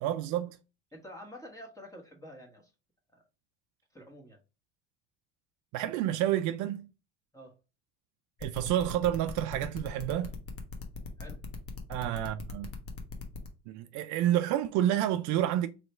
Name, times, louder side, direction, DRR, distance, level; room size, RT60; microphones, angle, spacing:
voice 1, 0.0-0.6 5.7-6.9 8.4-10.4 11.9-12.7 13.7-15.7, right 12 dB, 65° right, 0.5 m, -29 dB
voice 2, 0.9-2.7 3.1-3.2 3.9-4.4 7.3-7.5 11.2-11.4, equal, 10° left, 1.4 m, -48 dB
sound 1, 8.4-13.5, left 4 dB, 45° left, 1.1 m, -41 dB
3.2 x 3.0 x 4.3 m
supercardioid pair, 105°, 33 cm